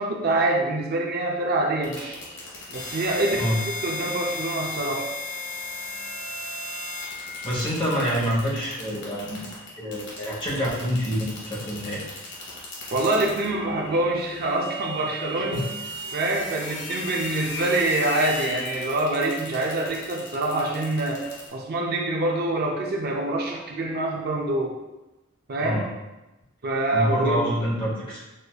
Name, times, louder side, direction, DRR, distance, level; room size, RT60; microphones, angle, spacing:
voice 1, 0.0-2.2 2.7-3.5 3.8-5.1 12.9-15.7 16.1-21.2 21.5-24.7 25.5-25.8 26.6-27.4, right 2 dB, 50° right, 0 dB, 0.5 m, -25 dB
sound 1, 1.8-21.5, left 2 dB, 60° left, 1.3 m, -36 dB
voice 2, 7.4-9.5 9.8-12.0 15.3-15.6 25.6-25.9 26.9-28.2, equal, 25° left, -4 dB, 1.0 m, -27 dB
6.4 x 2.6 x 2.4 m, 1.0 s
head